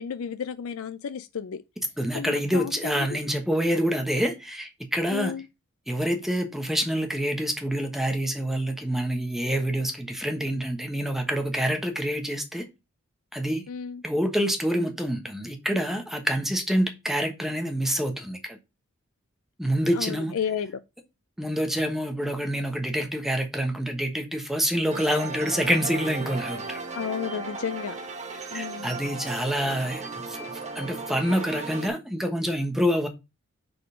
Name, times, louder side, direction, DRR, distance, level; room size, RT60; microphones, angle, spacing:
voice 1, 0.0-1.6 2.1-3.1 5.1-5.4 13.7-14.0 19.9-20.7 26.9-28.0 28.5-29.0, left 7 dB, 70° left, 0.4 m, -32 dB
voice 2, 2.0-5.3 5.9-12.6 13.3-13.6 14.0-18.6 19.6-20.3 21.4-26.8 28.5-30.4 30.7-33.1, equal, ahead, 1.1 m, -27 dB
sound 1, 24.9-31.9, right 4 dB, 35° right, 1.0 m, -36 dB
6.8 x 3.8 x 5.0 m
head